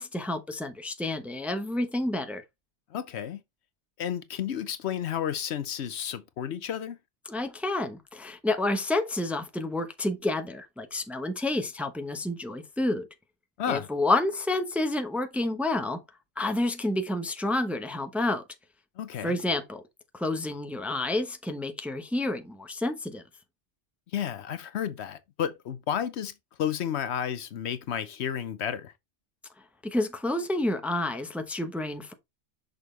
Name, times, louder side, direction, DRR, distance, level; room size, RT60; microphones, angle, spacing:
voice 1, 0.0-2.4 7.3-13.1 13.7-16.0 16.4-18.4 19.2-19.8 20.1-23.2 29.8-32.1, left 2 dB, ahead, 0.7 m, -29 dB
voice 2, 2.9-3.4 4.0-7.0 13.6-13.9 19.0-19.4 24.1-26.3 26.6-28.9, left 9 dB, 70° left, 0.9 m, -32 dB
6.3 x 5.4 x 3.2 m
omnidirectional pair, 1.2 m